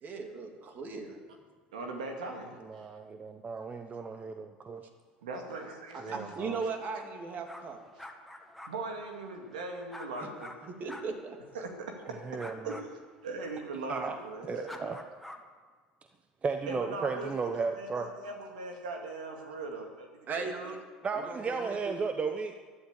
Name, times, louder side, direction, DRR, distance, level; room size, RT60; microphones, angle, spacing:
voice 1, 0.0-1.2 6.1-7.8 10.2-10.3 10.7-11.4 20.3-20.8 21.1-22.0, right 4 dB, 45° right, 3 dB, 3.0 m, -37 dB
voice 2, 1.7-2.9 5.2-6.3 8.0-8.1 8.7-10.7 11.5-11.9 12.6-12.9 13.2-15.0 16.7-20.7, right 3 dB, 85° right, 2 dB, 2.3 m, -40 dB
voice 3, 2.7-4.8 6.0-6.6 12.2-12.8 13.9-14.2 14.5-15.0 16.4-18.1 21.0-22.6, right 5 dB, 30° right, 7 dB, 1.0 m, -34 dB
sound 1, 7.4-10.6 10.9-11.0 12.4-12.8 14.7-15.4, left 1 dB, ahead, 1.9 m, -47 dB
13.0 x 12.0 x 8.4 m, 1.5 s
hypercardioid pair, 75°, 4 cm